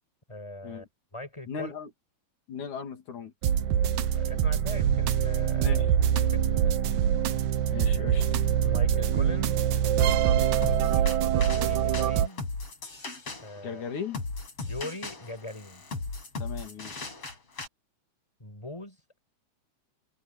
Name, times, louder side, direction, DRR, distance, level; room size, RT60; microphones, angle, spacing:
voice 1, 0.3-0.9 1.1-1.7 4.1-5.8 6.3-7.0 8.6-9.6 11.5-12.4 13.4-13.8 14.6-15.8 18.4-19.0, left 1 dB, 10° left, 6.6 m, -40 dB
voice 2, 1.5-1.9 2.5-3.3 5.6-5.9 7.7-8.2 13.6-14.2 16.4-17.1, left 6 dB, 80° left, 4.0 m, -37 dB
sound 1, 3.4-12.3, right 9 dB, 75° right, 2.5 m, -24 dB
sound 2, 10.6-17.7, left 3 dB, 50° left, 6.8 m, -38 dB
omnidirectional pair, 3.4 m